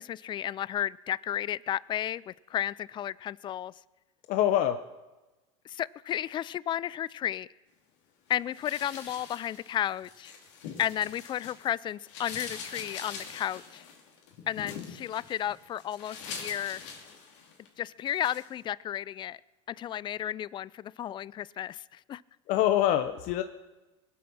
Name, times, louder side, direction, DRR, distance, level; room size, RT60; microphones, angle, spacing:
voice 1, 0.0-3.7 5.7-7.5 8.3-10.3 10.8-13.8 14.5-16.8 17.8-19.4 19.7-22.2, left 11 dB, 30° left, 0.4 m, -33 dB
voice 2, 4.3-4.8 22.5-23.4, left 12 dB, 55° left, 0.7 m, -24 dB
sound 1, 8.5-11.7 12.0-17.7 18.1-18.5, left 6 dB, 70° left, 2.9 m, -44 dB
22.0 x 8.5 x 6.0 m
supercardioid pair, 105°, 16 cm